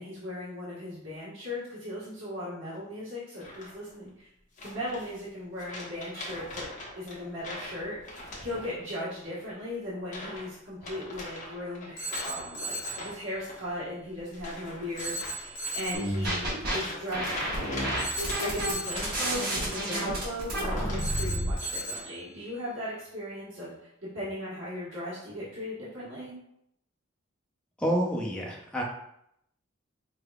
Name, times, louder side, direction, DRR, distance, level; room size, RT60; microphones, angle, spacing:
voice 1, 0.0-4.3 4.6-6.7 6.9-17.3 18.4-26.3, left 1 dB, 65° right, -9 dB, 1.4 m, -38 dB
sound 1, 3.4-3.9 4.6-5.3 5.6-9.0 9.3-9.6 10.0-10.5 10.8-21.3 21.6-22.0, left 1 dB, 35° left, 1.0 m, -42 dB
Telephone, 12.0-13.1 15.0-16.1 18.0-19.1 21.0-22.1, right 1 dB, 90° left, 1.0 m, -36 dB
sound 2, 15.9-16.8 17.1-21.5, right 1 dB, 45° right, 1.4 m, -30 dB
voice 2, 27.8-28.8, equal, 5° left, -3 dB, 0.6 m, -28 dB
4.6 x 3.4 x 2.3 m, 0.77 s
head